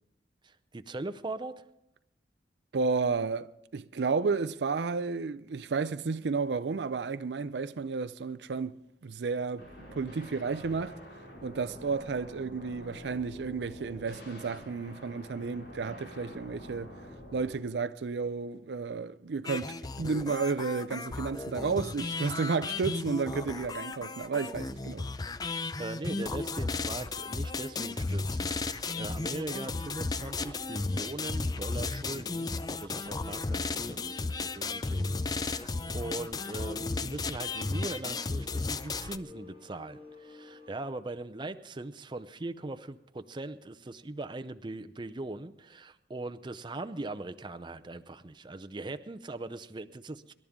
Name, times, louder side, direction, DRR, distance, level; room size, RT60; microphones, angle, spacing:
voice 1, 0.4-1.5 25.8-50.3, right 2 dB, 25° right, 0.6 m, -40 dB
voice 2, 2.7-8.7 9.0-9.7 9.9-11.0 11.4-16.9 17.3-25.1, right 4 dB, 75° right, 0.5 m, -32 dB
sound 1, 9.6-17.6, equal, 85° left, 6.0 m, -47 dB
sound 2, 19.5-39.2, left 3 dB, 20° left, 0.5 m, -34 dB
sound 3, 27.7-40.8, left 3 dB, 50° left, 5.3 m, -53 dB
25.5 x 12.0 x 3.7 m
head